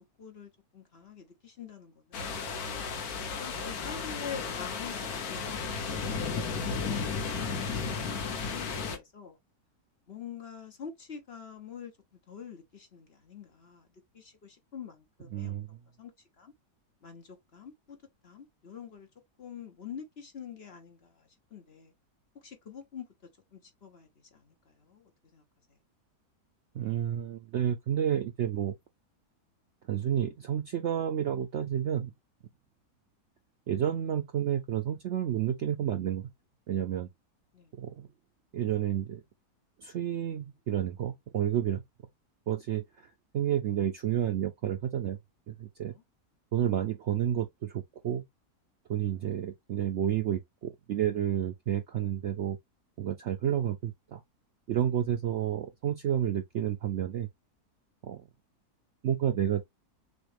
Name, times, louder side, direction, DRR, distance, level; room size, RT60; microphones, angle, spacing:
voice 1, 0.0-2.3 3.2-9.4 10.1-11.9 12.3-13.9 14.1-16.1 16.4-16.5 17.0-18.0 18.2-19.1 19.4-21.9 22.4-23.1 23.5-25.4 37.5-37.7 45.9-46.0, left 7 dB, 45° left, 1.2 m, -46 dB
sound 1, 2.1-9.0, left 5 dB, 70° left, 1.4 m, -34 dB
voice 2, 15.3-15.7 26.7-28.7 29.9-32.1 33.7-36.3 36.7-37.1 37.8-38.1 38.5-39.2 39.8-41.8 42.5-43.1 43.3-45.2 45.5-45.9 46.5-48.2 48.9-52.6 53.0-54.2 54.7-57.3 58.0-58.2 59.0-59.6, right 10 dB, 65° right, 0.7 m, -30 dB
6.4 x 2.4 x 3.2 m
omnidirectional pair, 1.7 m